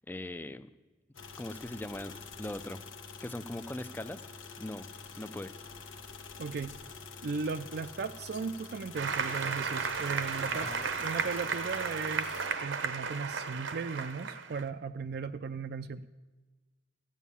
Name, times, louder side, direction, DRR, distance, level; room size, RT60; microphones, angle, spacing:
voice 1, 0.1-0.7 1.4-2.1 2.4-2.8 3.2-4.2 4.6-4.8 5.2-5.5 10.5-10.9, left 1 dB, 10° left, 13 dB, 0.4 m, -40 dB
sound 1, 1.1-12.5, left 4 dB, 85° left, 1.2 m, -47 dB
voice 2, 6.4-6.8 7.2-10.7 11.0-16.1, right 5 dB, 55° right, 9 dB, 0.4 m, -37 dB
Applause, 8.9-14.6, right 5 dB, 70° right, 0.8 m, -34 dB
14.5 x 7.3 x 8.4 m, 1.2 s
head